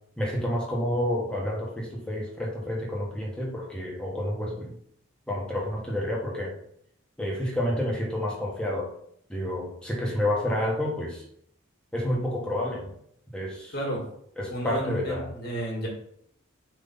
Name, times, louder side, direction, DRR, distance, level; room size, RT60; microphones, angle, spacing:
voice 1, 0.2-4.7 5.3-6.6 7.2-8.9 9.3-11.2 11.9-12.9 13.3-13.7 14.4-15.3, left 1 dB, 5° left, -3 dB, 1.3 m, -29 dB
voice 2, 14.5-15.9, right 1 dB, 50° left, -1 dB, 1.9 m, -31 dB
4.6 x 3.9 x 5.6 m, 0.69 s
head